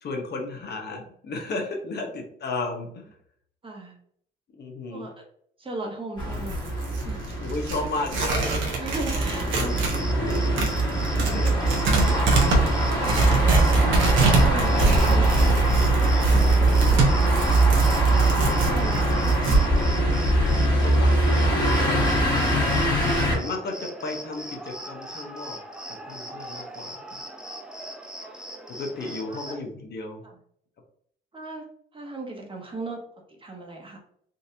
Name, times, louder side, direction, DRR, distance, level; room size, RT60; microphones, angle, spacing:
voice 1, 0.0-3.1 4.5-5.1 7.4-8.5 11.0-11.8 12.1-12.4 20.8-22.8 23.3-25.6 25.9-27.0 28.7-30.2, left 3 dB, 55° left, 2 dB, 0.9 m, -34 dB
voice 2, 3.6-3.9 4.9-5.1 5.6-7.2 8.8-10.2 12.7-13.9 14.4-17.0 18.1-20.7 28.2-28.4 29.3-29.6 31.3-31.6 31.9-33.0 33.4-34.0, right 2 dB, 25° right, 1 dB, 1.0 m, -37 dB
sound 1, 6.2-23.3, right 2 dB, 20° left, 1.4 m, -22 dB
Tearing, 6.3-10.0 10.3-19.6, right 3 dB, 75° right, 1.0 m, -25 dB
Cricket, 9.7-29.6, equal, 5° right, 0.6 m, -40 dB
3.8 x 2.7 x 2.6 m, 0.64 s
cardioid pair, 90°, 20 cm